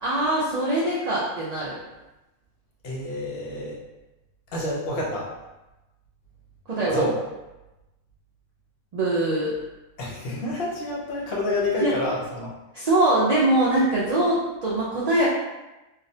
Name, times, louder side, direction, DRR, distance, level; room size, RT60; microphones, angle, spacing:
voice 1, 0.0-1.8 6.7-7.0 8.9-9.5 11.8-12.0 12.7-15.2, right 1 dB, 80° right, -7 dB, 0.3 m, -22 dB
voice 2, 2.8-3.8 4.5-5.3 6.9-7.2 10.0-12.5, left 1 dB, 60° left, -4 dB, 0.7 m, -28 dB
2.4 x 2.0 x 2.6 m, 1.0 s
omnidirectional pair, 1.3 m